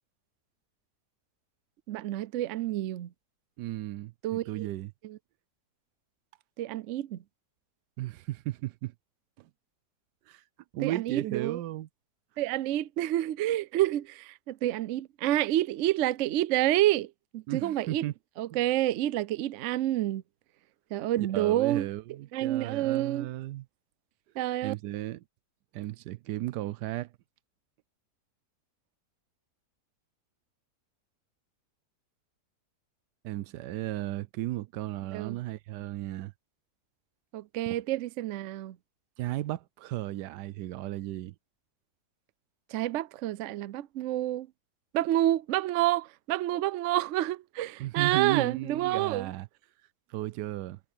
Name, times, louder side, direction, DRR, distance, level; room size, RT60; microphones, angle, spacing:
voice 1, 1.9-3.1 4.2-4.7 5.0-5.2 6.6-7.2 10.8-11.6 12.4-18.0 18.4-20.2 20.9-21.9 22.3-23.3 24.4-24.7 35.1-35.4 37.3-38.8 42.7-44.5 44.9-49.3, right 14 dB, 65° right, 0.7 m, -28 dB
voice 2, 3.6-4.9 8.0-8.9 9.4-9.5 10.3-10.4 10.7-11.9 17.5-18.1 18.5-18.6 21.2-23.7 24.6-25.2 25.7-27.1 33.2-36.3 37.7-37.8 39.2-41.3 47.8-49.5 50.1-50.8, right 15 dB, 85° right, 1.2 m, -35 dB
omnidirectional pair, 1.8 m